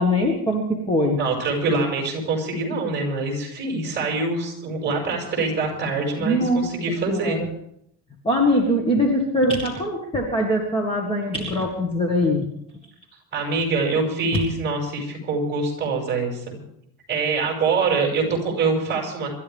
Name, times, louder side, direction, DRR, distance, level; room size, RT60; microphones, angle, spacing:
voice 1, 0.0-1.2 6.2-6.7 7.1-7.4 8.2-12.5, left 1 dB, 15° left, 1 dB, 1.9 m, -22 dB
voice 2, 1.2-7.4 13.3-16.6 17.1-19.3, right 3 dB, 25° right, -1 dB, 6.7 m, -24 dB
26.0 x 13.0 x 3.6 m, 0.71 s
cardioid pair, 160°, 42 cm